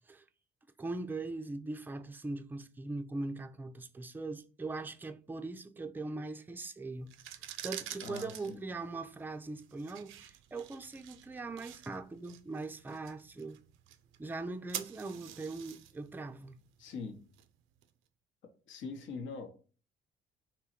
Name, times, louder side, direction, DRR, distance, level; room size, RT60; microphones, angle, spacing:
voice 1, 0.8-7.1 7.6-13.6 14.2-16.6, right 3 dB, 10° right, 0.4 m, -41 dB
sound 1, 7.0-17.9, right 11 dB, 85° right, 0.4 m, -48 dB
voice 2, 8.0-8.7 16.8-17.2 18.7-19.5, left 4 dB, 75° left, 0.9 m, -42 dB
3.7 x 3.0 x 4.3 m
cardioid pair, 90°, 20 cm